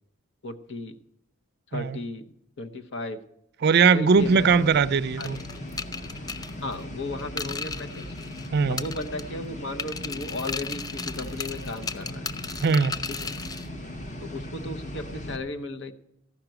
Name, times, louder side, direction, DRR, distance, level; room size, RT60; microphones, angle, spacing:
voice 1, 0.4-1.0 1.7-2.3 2.6-3.2 3.9-4.7 5.2-5.3 6.6-8.0 8.7-12.3 14.2-15.9, left 2 dB, 60° left, 0.9 m, -35 dB
voice 2, 3.6-5.4 8.5-8.8 12.6-13.0, right 5 dB, 50° right, 0.4 m, -20 dB
sound 1, 4.2-15.4, left 1 dB, 35° left, 1.2 m, -38 dB
sound 2, 5.2-8.5 8.8-9.4 9.8-13.7, left 5 dB, 20° left, 0.4 m, -35 dB
14.5 x 5.9 x 8.9 m
head